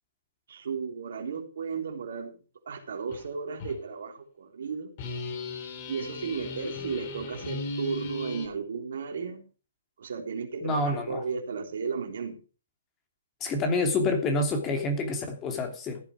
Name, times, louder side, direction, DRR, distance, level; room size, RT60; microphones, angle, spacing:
voice 1, 0.5-2.3 2.6-4.9 5.9-9.4 10.0-12.4, right 5 dB, 65° right, 3 dB, 3.4 m, -34 dB
sound 1, 3.1-3.3 3.6-3.8 5.0-8.5, left 3 dB, 45° left, 3.3 m, -36 dB
voice 2, 10.6-11.2 13.4-16.0, left 2 dB, 20° left, 5 dB, 2.8 m, -27 dB
15.0 x 9.0 x 5.0 m, 0.36 s
hypercardioid pair, 135°, 0 cm